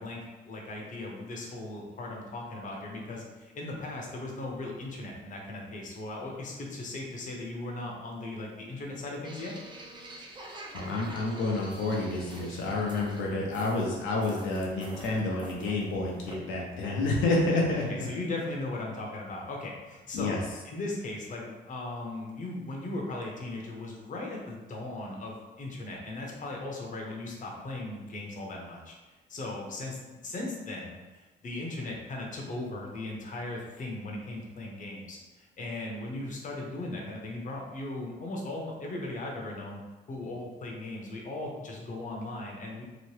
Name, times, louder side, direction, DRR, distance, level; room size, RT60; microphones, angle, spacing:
voice 1, 0.0-9.5 17.9-20.4 20.6-39.8 40.1-42.8, left 2 dB, 40° left, -1 dB, 0.7 m, -38 dB
sound 1, 9.2-16.3, right 1 dB, 25° right, 0.5 m, -47 dB
voice 2, 10.7-18.1 20.1-20.4, left 2 dB, 80° left, -3 dB, 0.6 m, -29 dB
2.9 x 2.1 x 3.1 m, 1.2 s
cardioid pair, 90°, 20 cm